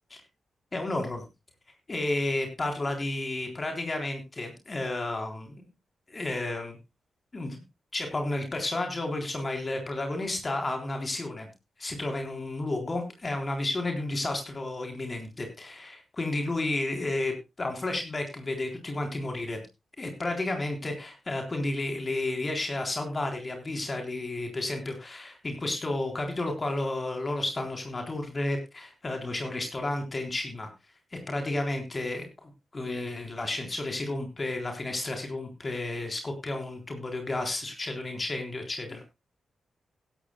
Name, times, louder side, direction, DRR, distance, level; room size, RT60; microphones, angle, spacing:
voice 1, 0.7-1.2 1.9-5.5 6.1-6.8 7.3-7.6 7.9-11.5 11.8-19.6 20.0-30.7 31.1-39.0, left 2 dB, 40° left, 4 dB, 3.8 m, -32 dB
16.0 x 12.5 x 2.3 m, 0.24 s
supercardioid pair, 40°, 0 cm